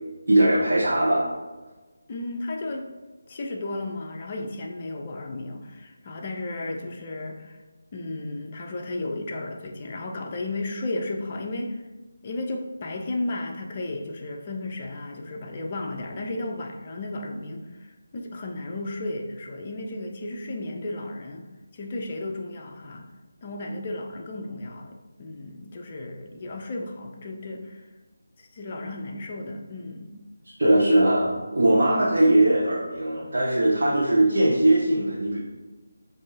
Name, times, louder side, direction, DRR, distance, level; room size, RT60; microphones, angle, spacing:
voice 1, 0.3-1.2 30.5-35.4, right 1 dB, 55° right, -5 dB, 0.9 m, -20 dB
voice 2, 2.1-2.9 3.3-7.6 7.9-11.8 12.2-21.5 21.7-23.1 23.4-27.9 28.4-30.2, left 2 dB, 30° left, 2 dB, 0.5 m, -34 dB
7.1 x 2.7 x 2.8 m, 1.2 s
figure-of-eight pair, 155°, 0 cm